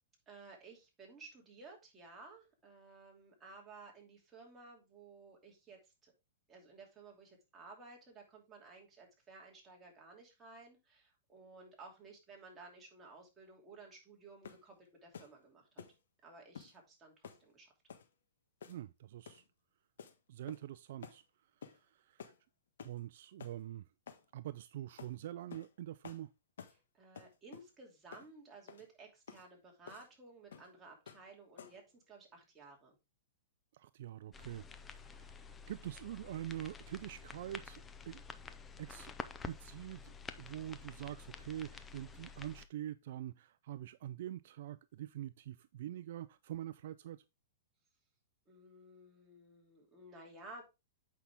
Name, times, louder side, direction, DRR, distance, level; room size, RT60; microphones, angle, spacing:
voice 1, 0.3-6.1 6.5-15.8 16.2-17.7 26.9-32.9 48.5-50.6, right 3 dB, 15° right, 2.8 m, -56 dB
sound 1, 14.4-14.7 15.1-15.4 15.8-16.0 16.6-16.8 17.2-17.5 17.9-18.1 18.6-18.9 19.3-19.5 20.0-20.2 20.5-20.7 21.0-21.2 21.6-21.8 22.2-22.4 22.8-23.0 23.4-23.6 24.1-24.3 25.0-25.1 25.5-25.7 26.0-26.2 26.6-26.8 27.2-27.7 28.1-28.3 28.7-28.9 29.3-29.5 29.9-30.1 30.5-30.7 31.1-31.3 31.6-31.9, left 7 dB, 80° left, 1.4 m, -52 dB
voice 2, 18.7-19.4 20.3-22.3 22.8-23.9 24.3-26.3 33.7-38.2 38.8-39.1 39.4-40.1 40.4-47.2, right 12 dB, 60° right, 0.4 m, -45 dB
sound 2, 34.3-42.7, left 5 dB, 15° left, 0.6 m, -50 dB
8.3 x 5.7 x 3.5 m
hypercardioid pair, 155°, 0 cm